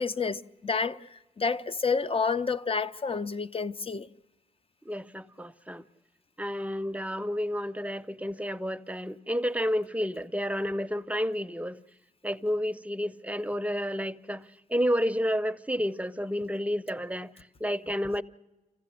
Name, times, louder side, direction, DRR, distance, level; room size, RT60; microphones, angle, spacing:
voice 1, 0.0-4.1, left 5 dB, 40° left, 0.7 m, -29 dB
voice 2, 4.8-5.8 6.4-11.8 12.2-18.2, equal, 10° right, 0.7 m, -30 dB
26.0 x 15.5 x 7.7 m
cardioid pair, 70°, 15 cm